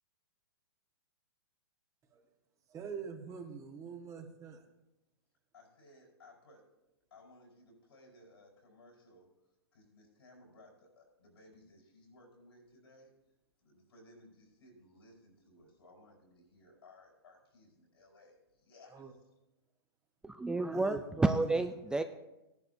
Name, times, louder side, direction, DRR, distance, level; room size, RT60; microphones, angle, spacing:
voice 1, 2.7-4.6 18.9-19.2 20.7-21.6 22.0-22.1, right 6 dB, 25° right, 1.3 m, -46 dB
voice 2, 5.5-6.6 7.1-9.3 9.7-13.1 13.6-19.0, left 1 dB, 80° left, 4.9 m, -60 dB
voice 3, 20.2-22.0, right 2 dB, 5° right, 0.4 m, -30 dB
16.5 x 11.0 x 2.7 m
hypercardioid pair, 125°, 13 cm